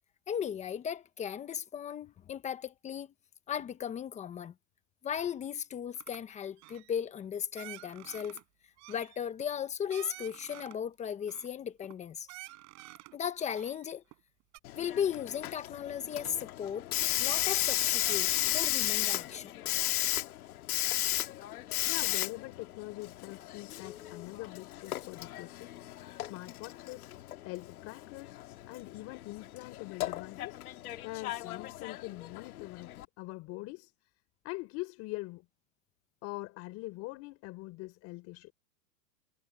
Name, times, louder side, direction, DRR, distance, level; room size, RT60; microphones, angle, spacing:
voice 1, 0.3-3.1 3.5-4.5 5.0-8.4 8.9-12.3 13.1-14.0 14.7-16.9 17.2-19.5, left 8 dB, 15° left, 1.1 m, -36 dB
sound 1, 6.0-6.2 6.6-7.0 7.6-8.4 8.8-10.8 11.3-11.9 12.3-13.2 13.5-14.2 14.5-14.6, right 24 dB, 35° right, 7.0 m, -50 dB
Hiss, 14.7-33.1, left 14 dB, 65° left, 1.9 m, -35 dB
voice 2, 21.8-25.7 26.3-27.1 27.4-30.6 31.0-33.9 34.4-35.5 36.2-38.5, left 21 dB, 30° left, 4.3 m, -43 dB
hypercardioid pair, 150°, 47 cm